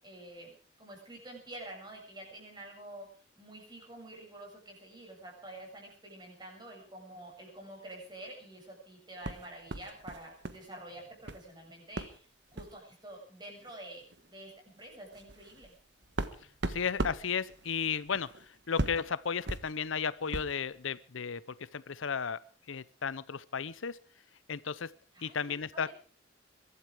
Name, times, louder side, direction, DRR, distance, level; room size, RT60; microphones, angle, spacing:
voice 1, 0.0-3.1 3.4-12.3 12.5-14.5 14.8-15.7 25.1-25.9, right 1 dB, 20° right, 0 dB, 7.5 m, -48 dB
sound 1, 9.2-10.7 10.9-11.5 12.0-12.2 12.5-12.8 13.7-13.8 14.1-14.3 14.8-20.6, right 1 dB, 60° right, 1.4 m, -39 dB
voice 2, 16.7-22.4 22.7-24.0 24.5-24.9 25.2-25.9, left 6 dB, 85° left, 18 dB, 0.7 m, -34 dB
22.5 x 12.5 x 4.9 m, 0.42 s
head